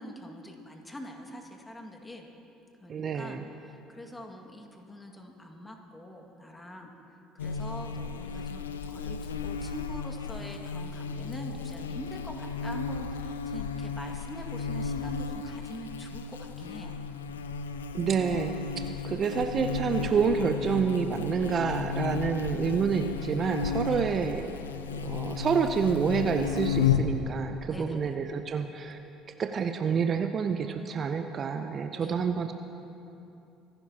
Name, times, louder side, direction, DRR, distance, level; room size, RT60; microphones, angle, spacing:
voice 1, 0.0-2.3 2.8-6.9 7.3-8.6 8.9-17.0 23.8-24.1 27.7-28.1 31.9-32.2, left 1 dB, 15° left, 2 dB, 2.0 m, -44 dB
voice 2, 2.9-3.4 17.9-24.5 25.0-29.0 29.4-32.5, right 6 dB, 45° right, 8 dB, 0.6 m, -28 dB
Buzz, 7.4-27.2, left 6 dB, 90° left, 0.5 m, -33 dB
25.0 x 11.5 x 2.9 m, 2.9 s
hypercardioid pair, 60°, 0 cm